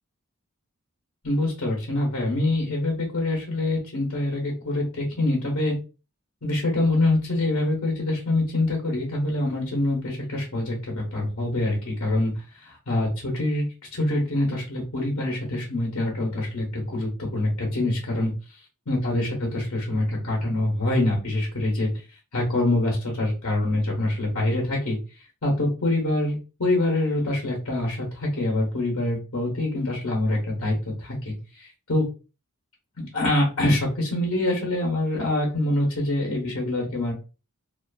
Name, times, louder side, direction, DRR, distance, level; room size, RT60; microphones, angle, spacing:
voice 1, 1.2-5.7 6.4-12.3 12.6-13.7 13.9-18.3 18.9-21.9 22.3-25.0 25.4-32.0 33.0-37.1, left 1 dB, 70° left, -2 dB, 0.9 m, -25 dB
2.5 x 2.4 x 2.3 m, 0.32 s
head